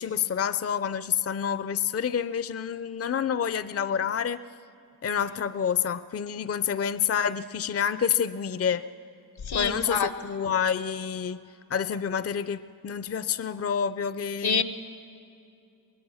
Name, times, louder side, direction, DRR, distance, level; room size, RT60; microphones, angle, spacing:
voice 1, 0.0-4.4 5.0-8.8 9.5-11.4 11.7-14.6, left 8 dB, 40° left, 13 dB, 0.5 m, -28 dB
voice 2, 9.4-10.1 14.4-14.6, left 5 dB, 85° left, 11 dB, 1.0 m, -26 dB
24.0 x 20.0 x 6.4 m, 2.6 s
wide cardioid pair, 75°, 37 cm